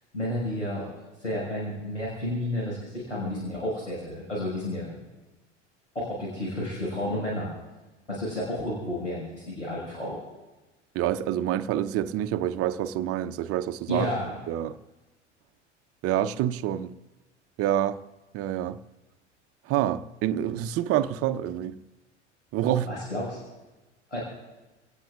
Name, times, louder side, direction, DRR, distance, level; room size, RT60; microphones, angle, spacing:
voice 1, 0.1-0.9 1.2-5.0 5.9-7.5 8.1-10.2 13.9-14.3 22.8-23.4 24.1-24.2, left 1 dB, 90° left, 5.6 m, -31 dB
voice 2, 10.9-14.1 14.5-14.8 16.0-16.9 17.6-18.0 18.3-18.8 19.7-21.8 22.5-22.9, right 12 dB, 40° right, 0.8 m, -27 dB
28.0 x 18.0 x 2.5 m
figure-of-eight pair, 75°, 35 cm